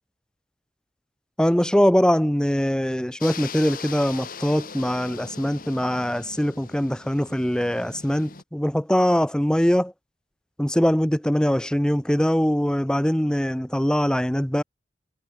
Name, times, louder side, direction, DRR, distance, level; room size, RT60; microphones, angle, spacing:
voice 1, 1.4-9.9 10.6-14.6, equal, 5° left, 0.6 m, -22 dB
sound 1, 3.2-8.4, left 6 dB, 50° left, 1.8 m, -40 dB
head